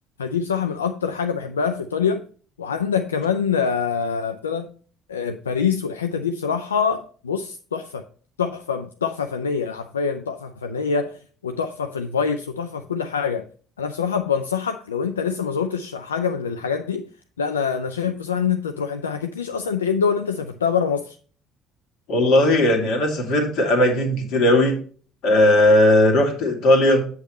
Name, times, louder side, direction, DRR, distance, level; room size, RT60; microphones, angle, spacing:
voice 1, 0.2-2.2 2.6-4.7 5.1-8.0 8.4-13.5 13.8-17.1 17.4-21.2, left 6 dB, 85° left, 0.4 m, -25 dB
voice 2, 22.1-24.8 25.2-27.1, left 1 dB, 60° left, 2.1 m, -17 dB
8.1 x 7.1 x 3.0 m
figure-of-eight pair, 55°, 0 cm